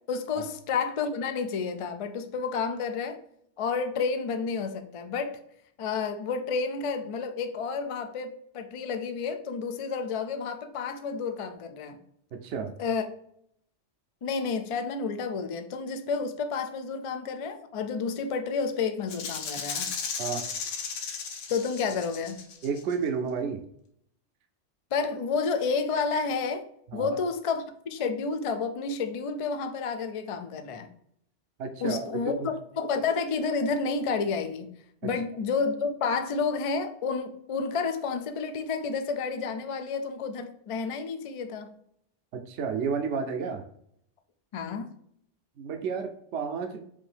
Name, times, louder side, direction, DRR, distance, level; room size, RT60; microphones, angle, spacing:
voice 1, 0.1-3.2 3.6-5.4 5.8-12.0 12.8-13.0 14.2-19.9 21.5-22.4 24.9-26.6 26.9-30.9 31.8-34.7 35.0-41.7 44.5-44.9, left 5 dB, 60° left, 7 dB, 0.3 m, -30 dB
voice 2, 12.3-12.7 20.2-20.5 22.6-23.6 26.9-27.2 31.6-32.1 32.4-32.5 35.0-35.1 42.3-43.6 45.6-46.8, right 6 dB, 75° right, 5 dB, 0.9 m, -31 dB
Rattle (instrument), 19.1-22.9, left 6 dB, 85° left, 1.1 m, -35 dB
5.4 x 2.7 x 3.3 m, 0.70 s
omnidirectional pair, 1.2 m